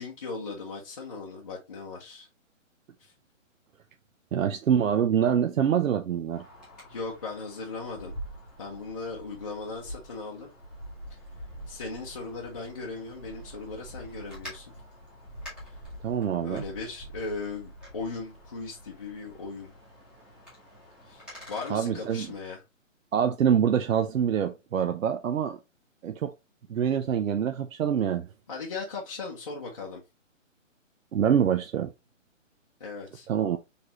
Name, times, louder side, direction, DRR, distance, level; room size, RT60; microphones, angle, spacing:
voice 1, 0.0-2.3 3.0-3.1 6.9-8.1 8.6-10.5 11.7-14.7 15.6-15.8 16.4-19.7 21.0-22.6 28.5-30.0 32.8-33.3, left 3 dB, 25° left, 0.7 m, -38 dB
voice 2, 4.3-6.4 16.0-16.6 21.3-21.4 21.7-22.3 23.1-25.6 26.0-26.3 26.7-28.3 31.1-31.9 33.3-33.6, right 8 dB, 80° right, 0.6 m, -25 dB
Wind, 6.3-22.3, equal, ahead, 1.0 m, -46 dB
4.3 x 3.4 x 2.8 m
hypercardioid pair, 165°, 39 cm